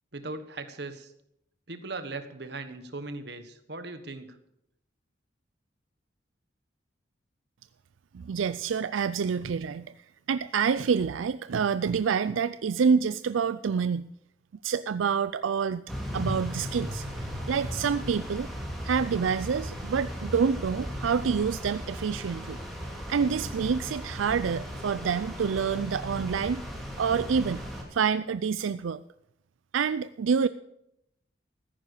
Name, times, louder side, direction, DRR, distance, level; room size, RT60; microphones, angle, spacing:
voice 1, 0.1-1.1 1.7-4.3, right 3 dB, 60° right, 9 dB, 1.4 m, -38 dB
voice 2, 8.1-9.9 10.3-14.1 14.6-15.8 16.1-17.0 17.5-18.5 18.8-22.6 23.1-26.6 27.0-27.6 27.9-29.0 29.7-30.5, right 6 dB, 90° right, 14 dB, 0.4 m, -27 dB
sound 1, 15.9-27.8, equal, ahead, 2.9 m, -36 dB
14.5 x 10.0 x 6.6 m, 0.78 s
head